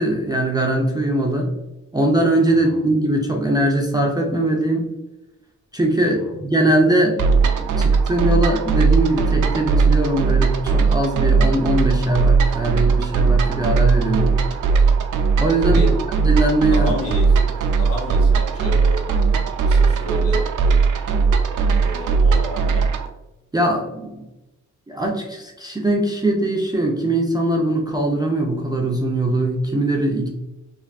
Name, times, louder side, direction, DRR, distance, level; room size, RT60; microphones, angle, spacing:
voice 1, 0.0-1.5 1.9-4.9 5.7-7.2 7.6-14.4 15.4-15.8 16.2-16.9 23.5-24.2 24.9-30.3, right 1 dB, 15° right, 0 dB, 0.4 m, -21 dB
voice 2, 2.5-2.8 6.0-6.4 15.6-16.1 16.7-17.4 17.8-19.0 19.7-20.5 21.7-22.9, equal, 50° left, 0 dB, 0.9 m, -30 dB
sound 1, 7.2-23.1, right 5 dB, 80° right, 0.5 m, -18 dB
3.2 x 2.4 x 2.4 m, 0.97 s
wide cardioid pair, 100°, 31 cm